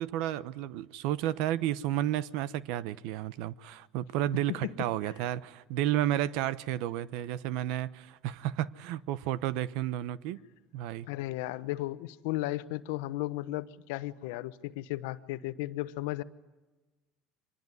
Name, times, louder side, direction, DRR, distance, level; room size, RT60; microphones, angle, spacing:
voice 1, 0.0-10.4 10.7-11.1, right 12 dB, 75° right, 0.9 m, -32 dB
voice 2, 11.1-16.2, left 16 dB, 85° left, 1.0 m, -35 dB
25.0 x 20.0 x 9.8 m
cardioid pair, 135°, 0 cm